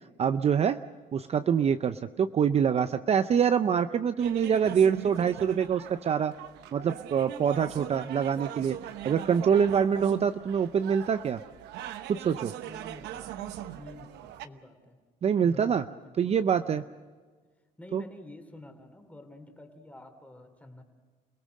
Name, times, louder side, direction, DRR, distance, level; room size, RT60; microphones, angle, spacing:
voice 1, 0.2-0.8 1.1-6.3 6.7-8.7 9.0-11.4 12.1-12.5 15.2-15.8 16.2-16.8 17.9-18.0, right 7 dB, 40° right, 11 dB, 0.6 m, -25 dB
sound 1, 4.2-14.5, right 11 dB, 85° right, 1.0 m, -41 dB
voice 2, 12.6-13.3 13.8-15.0 15.4-16.9 17.8-20.8, left 1 dB, 10° left, 6 dB, 3.1 m, -49 dB
28.5 x 18.0 x 6.4 m, 1.5 s
cardioid pair, 110°, 17 cm